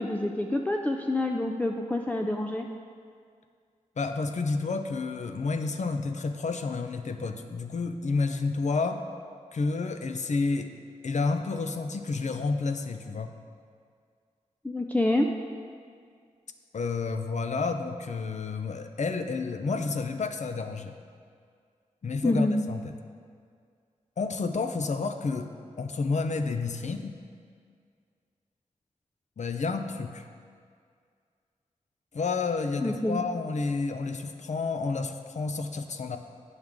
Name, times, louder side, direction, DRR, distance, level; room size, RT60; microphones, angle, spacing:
voice 1, 0.0-2.7 14.6-15.3 22.2-22.6 32.8-33.2, left 1 dB, 10° left, 2 dB, 0.4 m, -27 dB
voice 2, 4.0-9.0 9.5-10.7 11.0-13.4 16.7-21.0 22.0-22.9 24.2-27.2 29.4-30.3 32.1-36.2, left 4 dB, 60° left, 7 dB, 0.6 m, -30 dB
8.9 x 6.3 x 3.6 m, 2.1 s
cardioid pair, 50°, 14 cm